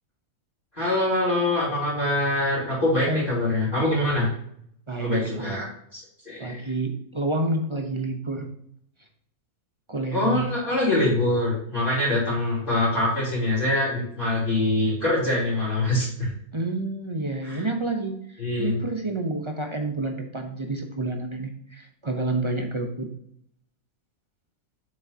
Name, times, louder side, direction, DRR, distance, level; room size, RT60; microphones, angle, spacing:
voice 1, 0.7-4.3 5.0-5.7 5.9-6.6 10.1-16.3 17.4-17.6 18.4-18.8, left 1 dB, 35° left, -8 dB, 3.5 m, -24 dB
voice 2, 3.1-3.6 4.9-5.6 6.4-8.5 9.9-10.5 16.5-23.1, right 2 dB, 30° right, 3 dB, 0.6 m, -29 dB
7.6 x 6.4 x 2.8 m, 0.68 s
omnidirectional pair, 1.5 m